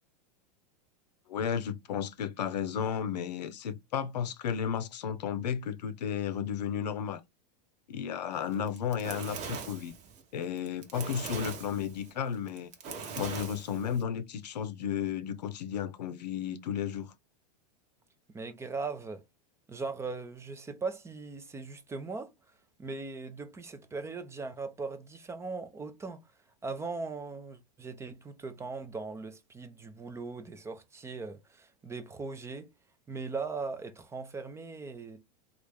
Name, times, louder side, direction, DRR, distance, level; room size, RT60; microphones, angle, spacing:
voice 1, 1.3-7.2 7.9-9.9 10.3-12.7 13.2-17.1, left 8 dB, 85° left, 0.6 m, -33 dB
Fire, 8.5-14.0, right 5 dB, 35° right, 0.9 m, -41 dB
voice 2, 18.3-19.2 19.7-22.3 22.8-26.2 26.6-32.7 33.1-35.2, right 4 dB, 15° right, 0.4 m, -39 dB
3.2 x 2.4 x 3.4 m
hypercardioid pair, 115°, 21 cm